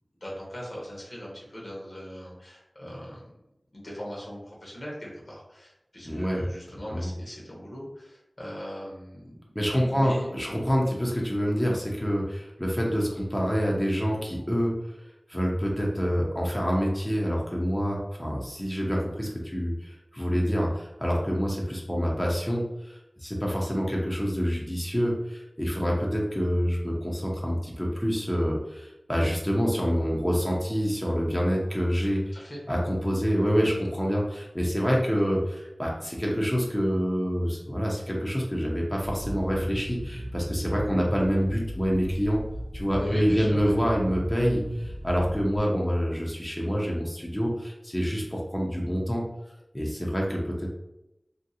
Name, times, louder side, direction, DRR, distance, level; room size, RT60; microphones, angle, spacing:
voice 1, 0.2-3.3 3.7-9.4 9.8-10.3 32.3-32.6 43.0-43.7, equal, 65° left, -4 dB, 1.0 m, -40 dB
voice 2, 6.0-6.5 6.9-7.1 9.5-15.0 15.3-42.4 42.7-49.2 49.7-50.7, equal, 10° left, -3 dB, 0.6 m, -27 dB
sound 1, 39.0-45.6, equal, 65° right, 0.6 m, -36 dB
2.8 x 2.6 x 2.7 m, 0.91 s
wide cardioid pair, 50°, 0 cm